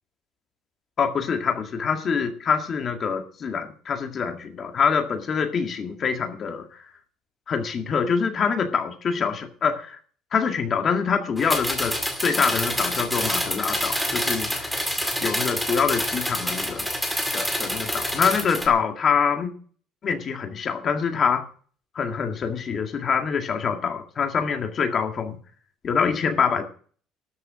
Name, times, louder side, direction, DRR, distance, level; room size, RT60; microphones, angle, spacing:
voice 1, 1.0-6.8 7.5-10.0 10.3-14.8 15.2-16.9 17.3-19.5 20.0-21.4 21.9-25.4 25.8-26.6, left 6 dB, 30° left, 5 dB, 1.9 m, -25 dB
sound 1, 11.4-18.7, equal, ahead, 2.1 m, -27 dB
12.5 x 6.8 x 8.8 m, 0.43 s
cardioid pair, 175°, 0 cm